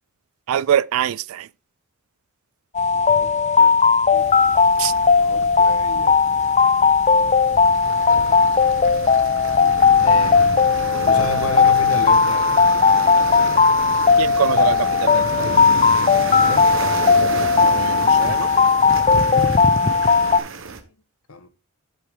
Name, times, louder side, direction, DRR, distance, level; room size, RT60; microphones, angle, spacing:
voice 1, 0.5-1.5 4.8-4.9 14.2-15.5 17.6-18.5, right 9 dB, 80° right, 0.3 m, -24 dB
sound 1, 2.7-20.4, left 5 dB, 35° left, 0.6 m, -17 dB
voice 2, 2.9-3.7 4.1-4.3 5.2-6.2 7.9-8.4 10.0-10.6 11.0-12.6 16.4-16.7 20.7-20.8 21.3-21.5, left 1 dB, 90° left, 1.2 m, -32 dB
sound 2, 4.1-20.8, right 3 dB, 65° right, 1.1 m, -32 dB
8.2 x 7.7 x 3.6 m
head